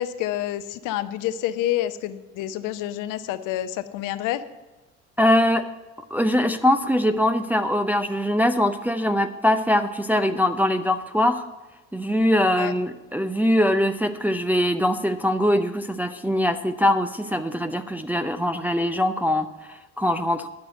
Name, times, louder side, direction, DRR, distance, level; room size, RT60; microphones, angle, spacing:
voice 1, 0.0-4.4 12.6-12.7, left 13 dB, 50° left, 12 dB, 0.8 m, -28 dB
voice 2, 5.2-5.7 6.1-11.5 11.9-20.5, left 1 dB, 5° right, 7 dB, 0.5 m, -22 dB
10.5 x 6.1 x 7.8 m, 1.1 s
figure-of-eight pair, 60°, 39 cm